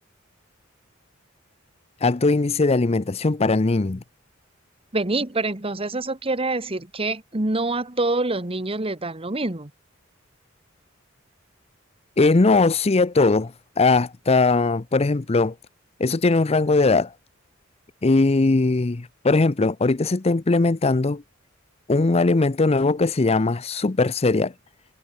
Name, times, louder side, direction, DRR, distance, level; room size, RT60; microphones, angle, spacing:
voice 1, 2.0-4.0 12.2-13.5 13.8-15.5 16.0-17.1 18.0-21.2 21.9-24.5, left 3 dB, 30° left, 0.6 m, -20 dB
voice 2, 4.9-9.7, right 2 dB, 30° right, 1.5 m, -26 dB
head